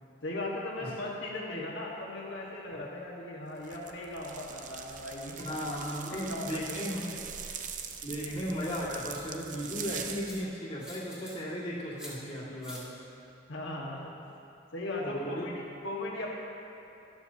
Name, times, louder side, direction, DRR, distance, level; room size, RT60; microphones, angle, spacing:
voice 1, 0.2-5.5 6.1-6.8 7.0-7.2 13.5-14.1 14.7-16.3, left 1 dB, 75° left, -4 dB, 1.4 m, -38 dB
sound 1, 3.6-10.4, right 7 dB, 40° right, 0.5 m, -42 dB
voice 2, 5.4-7.2 8.0-13.0 15.0-15.5, equal, 30° left, -8 dB, 2.0 m, -36 dB
sound 2, 8.4-8.5 9.1-9.7 10.2-10.4 10.8-11.3 12.0-12.1 12.6-12.8, equal, 5° right, 1.9 m, -47 dB
13.0 x 12.5 x 2.8 m, 2.7 s
head